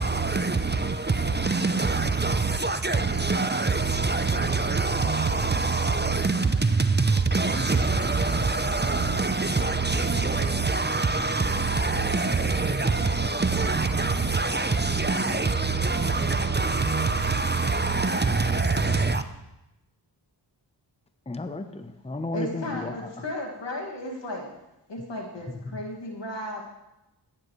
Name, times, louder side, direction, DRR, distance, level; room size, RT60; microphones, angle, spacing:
voice 1, 0.0-19.2, right 3 dB, 25° right, 0.7 m, -24 dB
sound 1, 5.2-16.9, left 1 dB, 45° left, 1.9 m, -44 dB
voice 2, 21.3-23.2 25.5-25.8, left 2 dB, 15° left, 0.8 m, -34 dB
voice 3, 22.3-24.5 24.9-26.6, left 1 dB, 80° left, 2.3 m, -34 dB
14.5 x 10.5 x 3.2 m
cardioid pair, 55°, 43 cm